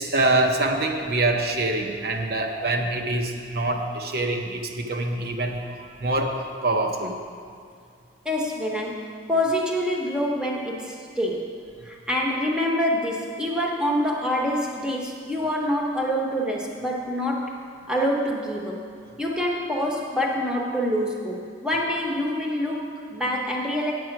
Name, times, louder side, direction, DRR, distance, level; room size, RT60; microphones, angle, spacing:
voice 1, 0.0-7.2, right 2 dB, 55° right, 3 dB, 0.8 m, -25 dB
voice 2, 8.2-11.5 11.9-17.5 17.9-18.8 19.2-23.9, equal, 5° right, -1 dB, 0.9 m, -26 dB
8.7 x 7.7 x 5.9 m, 2.2 s
head